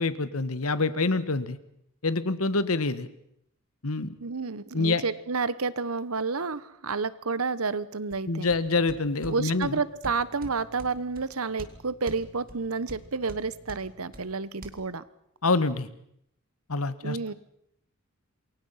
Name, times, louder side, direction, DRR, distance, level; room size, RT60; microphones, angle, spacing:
voice 1, 0.0-1.6 2.0-3.1 3.8-4.1 4.7-5.0 8.3-9.8 15.4-15.9 16.7-17.2, left 3 dB, 85° left, 14 dB, 1.5 m, -26 dB
voice 2, 4.2-8.5 9.3-15.0 17.0-17.3, right 4 dB, 80° right, 17 dB, 1.1 m, -30 dB
sound 1, 8.1-14.7, right 1 dB, 40° right, 2.4 m, -47 dB
27.5 x 22.5 x 5.8 m, 0.74 s
head